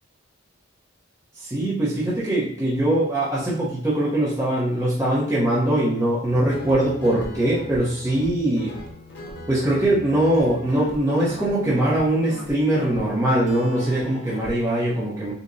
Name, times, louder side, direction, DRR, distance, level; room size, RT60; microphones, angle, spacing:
voice 1, 1.3-8.7 9.5-15.3, right 1 dB, 15° right, -9 dB, 0.8 m, -22 dB
Guitar, 6.2-14.5, left 1 dB, 55° left, 0.7 m, -39 dB
6.5 x 2.2 x 2.6 m, 0.65 s
head